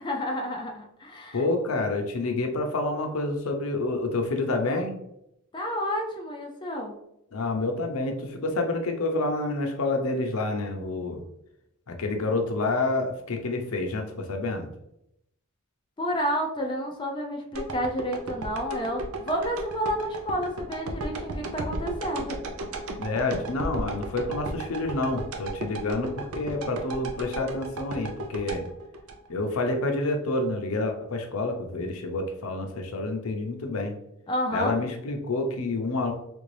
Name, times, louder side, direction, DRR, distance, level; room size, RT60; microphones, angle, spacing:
voice 1, 0.0-1.4 5.5-6.9 16.0-22.4 34.3-34.8, equal, 20° left, 0 dB, 0.4 m, -30 dB
voice 2, 1.3-5.0 7.3-11.2 11.9-14.7 23.0-28.7 29.3-33.9 34.5-36.1, left 2 dB, 80° left, 4 dB, 0.6 m, -28 dB
sound 1, 17.5-29.7 30.2-30.3, right 2 dB, 85° right, 0.5 m, -35 dB
3.4 x 2.6 x 3.2 m, 0.80 s
head